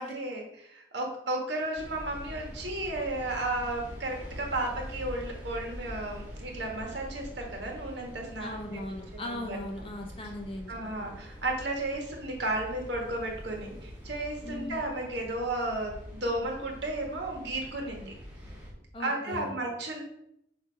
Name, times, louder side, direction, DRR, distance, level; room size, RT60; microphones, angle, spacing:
voice 1, 0.0-8.6 9.1-9.6 10.7-18.1 19.0-20.0, right 2 dB, 75° right, 1 dB, 1.5 m, -33 dB
sound 1, 1.8-18.7, equal, 10° right, 1.5 m, -44 dB
voice 2, 8.4-10.7 11.0-11.2 14.4-14.8 18.9-19.6, left 1 dB, 30° left, 1 dB, 0.8 m, -38 dB
6.5 x 2.9 x 5.1 m, 0.76 s
head